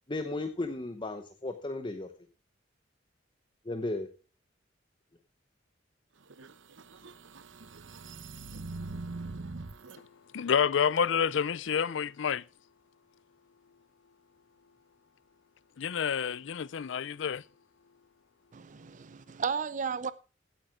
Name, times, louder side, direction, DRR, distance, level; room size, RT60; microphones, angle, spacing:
voice 1, 0.1-2.1 3.7-4.1, left 2 dB, 25° left, 0.9 m, -35 dB
sound 1, 6.2-10.0, right 3 dB, 90° right, 0.9 m, -42 dB
voice 2, 10.3-12.4 15.8-17.4, left 7 dB, 75° left, 0.5 m, -28 dB
voice 3, 18.5-20.1, right 6 dB, 40° right, 0.5 m, -34 dB
15.5 x 9.1 x 3.6 m
head